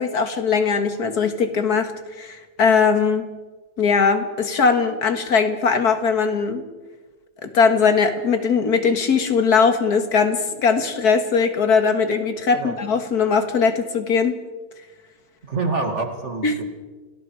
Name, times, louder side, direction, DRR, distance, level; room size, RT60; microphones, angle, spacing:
voice 1, 0.0-1.9 2.2-3.3 3.8-6.6 7.4-14.4 16.4-16.6, left 5 dB, 70° left, 7 dB, 2.3 m, -20 dB
voice 2, 15.4-16.6, right 3 dB, 45° right, 5 dB, 2.5 m, -26 dB
29.5 x 19.0 x 4.9 m, 1.3 s
omnidirectional pair, 1.7 m